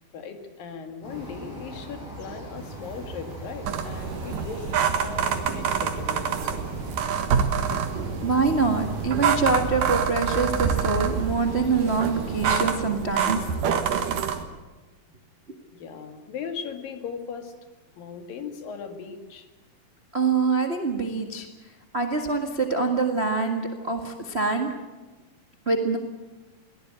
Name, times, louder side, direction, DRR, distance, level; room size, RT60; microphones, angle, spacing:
voice 1, 0.1-4.7 5.0-6.7 14.2-14.3 15.7-17.5 18.0-19.5, left 6 dB, 70° left, 6 dB, 3.7 m, -38 dB
sound 1, 1.0-12.8, equal, 40° left, 8.9 m, -40 dB
sound 2, 2.6-11.3, right 5 dB, 85° right, 3.7 m, -35 dB
sound 3, 3.7-14.4, right 7 dB, 65° right, 2.9 m, -27 dB
voice 2, 8.2-13.5 20.1-21.5 21.9-24.7 25.6-26.0, right 4 dB, 35° right, 4 dB, 0.9 m, -25 dB
22.5 x 17.5 x 8.9 m, 1.2 s
omnidirectional pair, 4.3 m